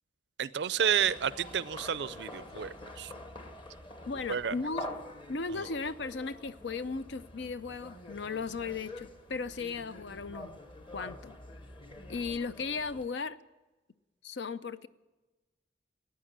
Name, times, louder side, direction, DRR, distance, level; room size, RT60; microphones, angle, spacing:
voice 1, 0.4-3.1 4.3-4.6 5.5-5.7, right 8 dB, 65° right, 18 dB, 0.5 m, -31 dB
sound 1, 0.8-13.1, left 1 dB, 25° left, 1.1 m, -46 dB
voice 2, 4.1-4.9 5.3-10.6 10.9-11.3 12.1-13.4 14.2-14.9, left 4 dB, 70° left, 14 dB, 0.6 m, -36 dB
15.0 x 9.5 x 8.6 m, 1.2 s
head